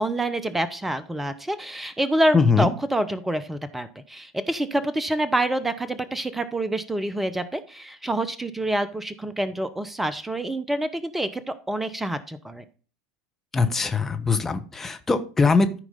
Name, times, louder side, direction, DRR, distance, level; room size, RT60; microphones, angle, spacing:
voice 1, 0.0-12.6, right 1 dB, 5° right, 12 dB, 0.8 m, -27 dB
voice 2, 2.3-2.7 13.5-15.8, left 4 dB, 15° left, 6 dB, 1.2 m, -21 dB
14.0 x 4.8 x 4.0 m, 0.39 s
figure-of-eight pair, 75°, 2 cm